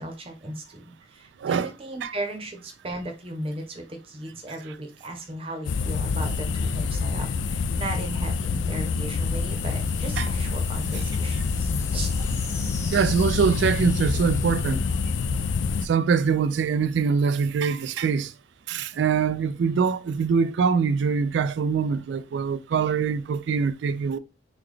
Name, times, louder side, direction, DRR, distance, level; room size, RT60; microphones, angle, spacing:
voice 1, 0.0-12.2, right 1 dB, 30° right, 0.8 m, -36 dB
voice 2, 1.4-1.7 2.0-2.1 10.2-10.3 12.9-14.9 15.8-18.3 18.7-24.2, right 6 dB, 80° right, 0.3 m, -23 dB
sound 1, 5.6-15.9, left 4 dB, 85° left, 0.3 m, -26 dB
sound 2, 9.1-16.0, left 2 dB, 15° left, 0.6 m, -43 dB
3.8 x 2.3 x 3.2 m
head